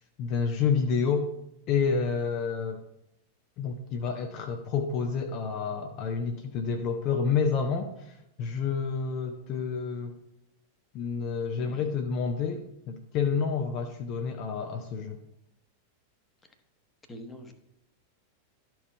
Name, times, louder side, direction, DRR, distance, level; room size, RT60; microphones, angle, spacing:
voice 1, 0.2-1.3 1.7-2.8 3.6-10.1 10.9-15.2, left 5 dB, 40° left, 4 dB, 0.7 m, -29 dB
voice 2, 17.1-17.5, equal, 15° left, 5 dB, 1.1 m, -44 dB
12.5 x 4.6 x 4.2 m, 0.84 s
figure-of-eight pair, 90°, 0 cm